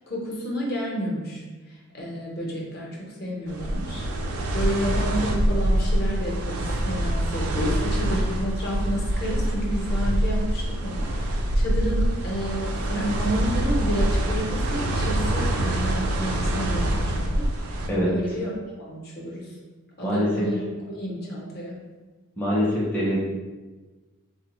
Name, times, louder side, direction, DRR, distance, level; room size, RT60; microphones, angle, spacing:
voice 1, 0.1-4.0 4.5-18.5 18.8-19.5 20.0-21.8, equal, 45° left, -3 dB, 0.6 m, -31 dB
sound 1, 3.5-17.9, right 1 dB, 90° right, 0.4 m, -25 dB
voice 2, 22.4-23.4, equal, 10° left, -7 dB, 0.5 m, -24 dB
3.7 x 2.0 x 2.9 m, 1.3 s
head